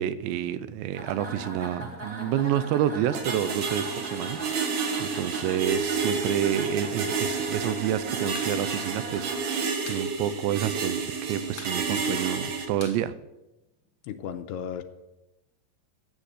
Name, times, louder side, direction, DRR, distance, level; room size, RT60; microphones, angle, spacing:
voice 1, 0.0-13.1, right 11 dB, 85° right, 14 dB, 2.9 m, -29 dB
sound 1, 0.9-9.6, right 2 dB, 25° right, 1.5 m, -39 dB
sound 2, 3.1-12.7, right 5 dB, 55° right, 2.3 m, -30 dB
sound 3, 8.3-8.6 8.8-8.9 9.2-10.1 10.4-10.5 10.8-11.2 11.5-13.9, left 5 dB, 60° left, 1.3 m, -45 dB
voice 2, 14.0-14.8, left 8 dB, 80° left, 8 dB, 2.6 m, -35 dB
12.5 x 8.1 x 8.2 m, 0.99 s
omnidirectional pair, 5.0 m